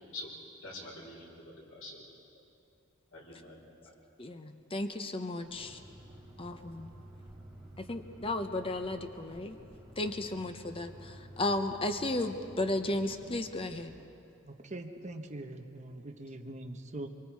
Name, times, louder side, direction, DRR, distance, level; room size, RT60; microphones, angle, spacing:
voice 1, 0.6-2.0 3.1-3.9, left 2 dB, 85° left, -3 dB, 5.5 m, -46 dB
voice 2, 4.2-5.8 6.4-6.9 7.8-9.6 10.0-13.9, left 2 dB, 25° left, 7 dB, 0.9 m, -34 dB
sound 1, 5.4-13.8, right 1 dB, ahead, 7.2 m, -52 dB
voice 3, 14.4-17.1, right 1 dB, 35° right, 3 dB, 1.2 m, -42 dB
25.5 x 24.0 x 4.8 m, 2.7 s
head